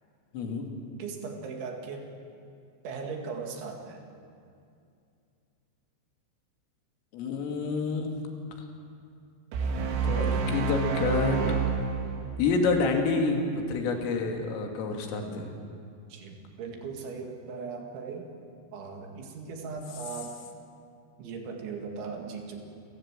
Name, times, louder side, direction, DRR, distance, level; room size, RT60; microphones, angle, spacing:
voice 1, 0.3-0.7 7.1-8.2 10.0-11.4 12.4-15.5, left 4 dB, 80° left, 2 dB, 4.8 m, -28 dB
voice 2, 1.0-2.1 2.8-4.0 16.1-18.3 18.7-20.4 21.2-22.6, right 5 dB, 70° right, 2 dB, 4.3 m, -38 dB
sound 1, 9.5-12.9, right 5 dB, 85° right, 4.9 m, -28 dB
30.0 x 15.5 x 7.5 m, 2.4 s
omnidirectional pair, 5.8 m